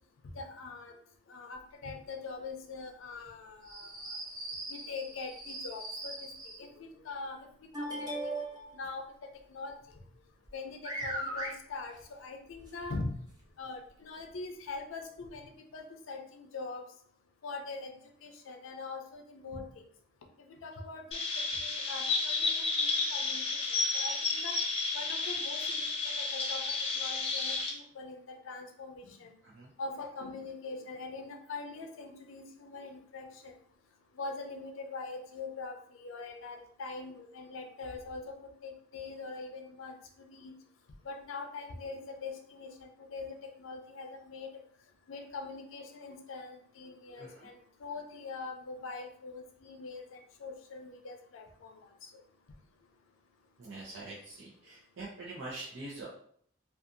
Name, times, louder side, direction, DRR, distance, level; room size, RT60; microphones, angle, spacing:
voice 1, 0.3-0.9 1.3-4.2 4.7-7.5 7.8-8.3 8.7-9.8 10.5-13.1 13.6-16.8 17.4-19.8 20.4-21.2 21.5-24.5 24.9-26.6 26.9-29.3 29.8-33.5 34.2-38.2 38.6-39.9 40.3-40.5 41.0-44.5 45.1-52.1, left 3 dB, 90° left, 4 dB, 0.5 m, -43 dB
sound 1, 3.6-6.6 7.7-8.7 10.4-10.5 10.8-11.5 12.7-12.8 13.3-13.4 14.2-14.3, right 1 dB, 20° right, 0.5 m, -39 dB
Chirp tweet, 21.1-27.7, left 3 dB, 30° left, 0.5 m, -32 dB
voice 2, 47.2-47.5 53.6-56.1, right 2 dB, 70° right, -6 dB, 0.6 m, -44 dB
2.6 x 2.4 x 2.5 m, 0.62 s
head